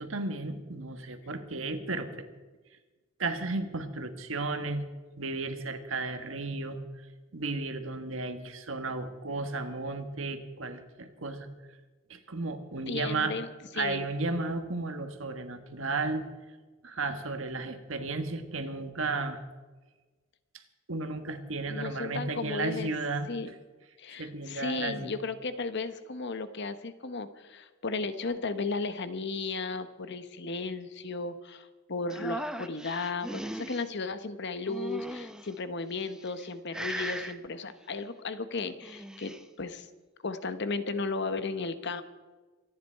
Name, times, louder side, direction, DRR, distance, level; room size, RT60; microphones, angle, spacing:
voice 1, 0.0-2.1 3.2-4.8 5.2-6.8 7.3-11.5 12.1-13.4 13.7-16.2 16.8-19.4 20.9-23.3 24.2-25.1, right 3 dB, 70° right, 8 dB, 1.5 m, -33 dB
voice 2, 12.9-13.5 13.7-14.1 21.7-22.9 23.3-23.5 24.0-39.9 40.2-42.0, left 3 dB, 60° left, 11 dB, 1.0 m, -35 dB
sound 1, 32.1-33.8 34.7-35.5 36.1-36.5 36.7-37.3 38.7-39.4, equal, 5° right, 0.7 m, -38 dB
25.0 x 10.0 x 4.6 m, 1.3 s
head